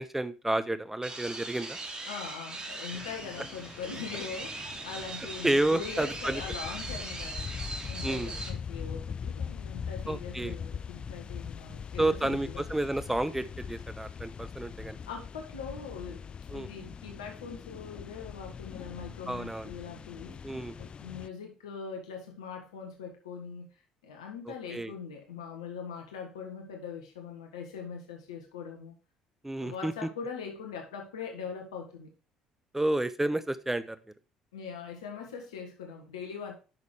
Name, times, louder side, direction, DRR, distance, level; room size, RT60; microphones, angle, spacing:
voice 1, 0.0-1.8 5.4-6.4 8.0-8.3 10.1-10.6 12.0-15.0 16.5-16.7 19.3-19.7 20.4-20.8 24.7-24.9 29.4-29.9 32.7-34.0, right 1 dB, 10° right, 13 dB, 0.8 m, -30 dB
sound 1, 1.0-8.5, right 2 dB, 30° right, 2.9 m, -40 dB
voice 2, 2.0-7.5 7.9-12.6 15.1-23.7 24.0-28.9 29.6-32.1 34.5-36.5, left 6 dB, 80° left, 3 dB, 1.6 m, -42 dB
sound 2, 2.9-21.3, left 6 dB, 35° left, 0.4 m, -42 dB
10.5 x 6.4 x 3.3 m, 0.35 s
hypercardioid pair, 55°, 3 cm